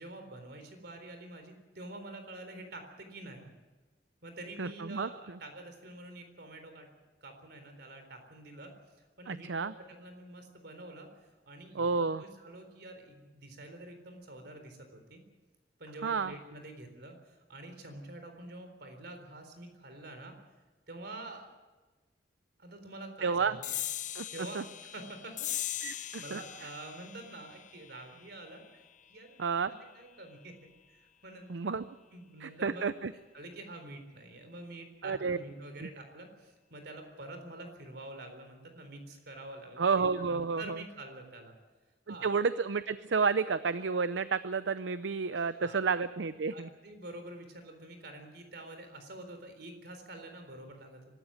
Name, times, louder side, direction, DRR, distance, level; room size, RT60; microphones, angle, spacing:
voice 1, 0.0-3.5 4.2-6.9 7.2-8.7 9.2-15.2 15.8-20.3 20.9-21.5 22.6-23.8 24.3-25.5 25.9-28.8 29.1-31.8 32.1-32.9 33.3-41.5 42.1-42.3 45.3-45.8 46.5-51.0, right 2 dB, 60° right, 6 dB, 4.0 m, -47 dB
voice 2, 4.6-5.1 9.3-9.7 11.8-12.2 16.0-16.3 23.2-23.6 24.1-24.3 24.5-24.6 25.8-26.4 29.4-29.7 31.5-31.8 32.4-33.1 35.0-35.4 35.8-35.9 39.8-40.8 42.1-46.7, right 5 dB, 85° right, 14 dB, 0.6 m, -31 dB
sound 1, 23.6-30.5, left 12 dB, 45° left, 0.6 m, -41 dB
24.5 x 13.5 x 9.3 m, 1.2 s
head